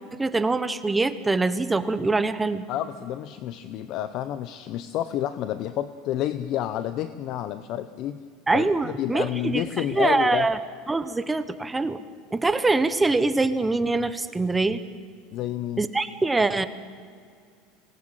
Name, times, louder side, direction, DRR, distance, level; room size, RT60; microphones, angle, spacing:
voice 1, 0.1-2.6 8.5-10.6 10.9-12.0 12.3-14.8 15.8-16.7, right 3 dB, 10° right, 12 dB, 0.9 m, -24 dB
voice 2, 2.7-8.2 8.5-10.5 15.3-15.8, left 12 dB, 45° left, 13 dB, 0.9 m, -29 dB
25.5 x 19.0 x 9.1 m, 2.1 s
cardioid pair, 160°, 0 cm